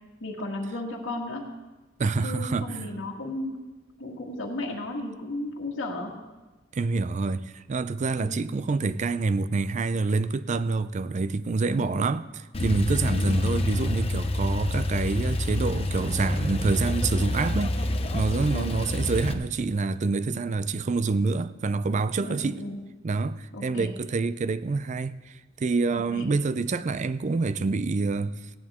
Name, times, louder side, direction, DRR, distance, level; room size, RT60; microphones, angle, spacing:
voice 1, 0.2-1.4 2.2-3.6 4.0-6.2 8.2-8.5 11.7-12.0 13.1-13.4 18.5-18.7 22.2-22.8 23.5-23.9 25.9-26.2, left 1 dB, 75° left, 1.9 m, -34 dB
voice 2, 2.0-2.9 6.7-17.9 18.1-22.6 23.0-28.3, right 3 dB, 40° right, 0.4 m, -27 dB
Male speech man speaking / Car / Idling, 12.5-19.3, left 1 dB, 30° left, 0.7 m, -27 dB
16.5 x 10.5 x 3.6 m
head